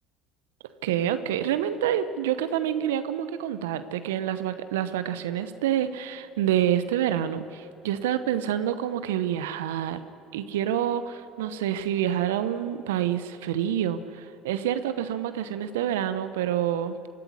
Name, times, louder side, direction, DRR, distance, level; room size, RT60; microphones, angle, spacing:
voice 1, 0.8-10.0 10.3-17.0, right 10 dB, 75° right, 12 dB, 0.9 m, -27 dB
24.0 x 15.0 x 9.7 m, 2.8 s
hypercardioid pair, 65°, 0 cm